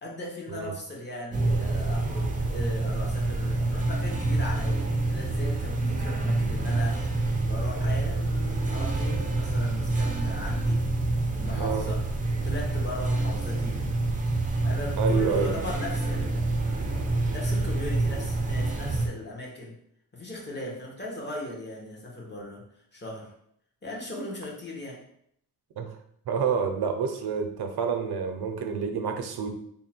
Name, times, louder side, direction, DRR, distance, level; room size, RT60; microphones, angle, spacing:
voice 1, 0.0-13.8 14.6-16.5 16.9-17.0 17.3-19.8 20.1-22.6 22.9-23.3 23.8-25.0, left 1 dB, 25° left, -2 dB, 1.0 m, -38 dB
sound 1, 1.3-19.1, right 2 dB, 20° right, 0.5 m, -27 dB
voice 2, 15.0-15.5 25.8-25.9 26.3-29.5, right 6 dB, 80° right, 6 dB, 0.6 m, -28 dB
3.5 x 2.2 x 4.2 m, 0.71 s
wide cardioid pair, 130°, 38 cm